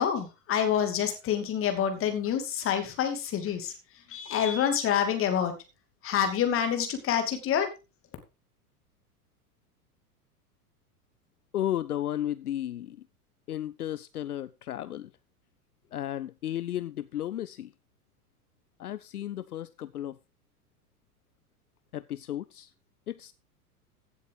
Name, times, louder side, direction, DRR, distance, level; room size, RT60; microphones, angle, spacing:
voice 1, 0.0-5.5 6.0-7.7, left 8 dB, 30° left, 2.6 m, -27 dB
voice 2, 11.5-13.0 13.5-15.1 15.9-17.7 18.8-20.2 21.9-22.7 23.1-23.3, left 12 dB, 75° left, 0.6 m, -34 dB
16.0 x 7.3 x 3.9 m
figure-of-eight pair, 95°, 46 cm